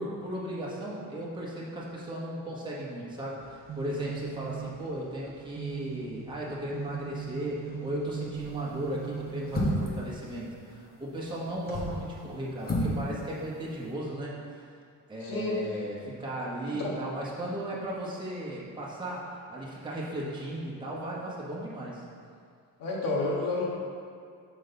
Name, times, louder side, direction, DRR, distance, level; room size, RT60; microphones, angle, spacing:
voice 1, 0.0-14.6 15.1-22.0, right 1 dB, 15° right, -6 dB, 1.2 m, -36 dB
sound 1, 3.4-10.3, right 9 dB, 35° right, 0.5 m, -40 dB
sound 2, 8.4-8.7 9.5-10.0 11.5-12.0 12.6-13.0 13.3-13.4, left 1 dB, 25° left, 1.2 m, -29 dB
voice 2, 15.2-15.6 16.7-16.9 22.8-23.7, left 3 dB, 70° left, -4 dB, 1.7 m, -30 dB
6.3 x 5.1 x 4.0 m, 2.3 s
cardioid pair, 120°, 36 cm